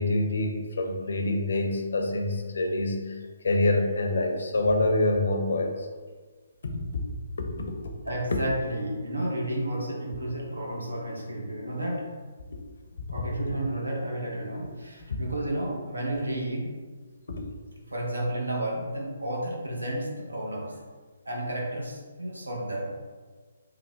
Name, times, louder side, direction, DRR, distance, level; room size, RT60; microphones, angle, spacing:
voice 1, 0.0-5.9 6.6-6.8 7.4-7.7 15.1-15.2 17.3-17.4, left 2 dB, 65° left, 3 dB, 0.6 m, -26 dB
voice 2, 8.0-12.1 13.1-16.7 17.9-20.8 21.3-22.9, right 1 dB, 90° right, -1 dB, 0.8 m, -32 dB
3.4 x 2.2 x 3.4 m, 1.4 s
figure-of-eight pair, 140°, 0 cm